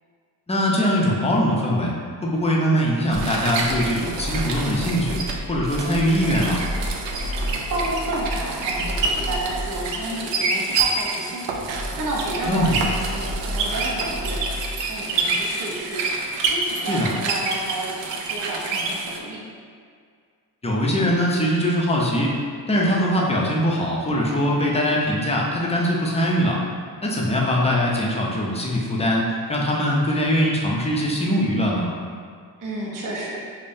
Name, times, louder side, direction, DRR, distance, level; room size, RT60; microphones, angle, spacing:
voice 1, 0.5-1.9 2.2-5.2 5.5-6.6 12.5-12.8 16.9-17.1 20.6-22.3 22.7-26.6 27.0-31.9, equal, 15° left, -3 dB, 0.5 m, -22 dB
sound 1, 3.1-19.2, right 3 dB, 80° right, 0.5 m, -27 dB
voice 2, 7.1-19.5 32.6-33.4, right 1 dB, 45° right, -3 dB, 0.7 m, -31 dB
5.1 x 2.1 x 2.6 m, 2.1 s
cardioid pair, 100°, 43 cm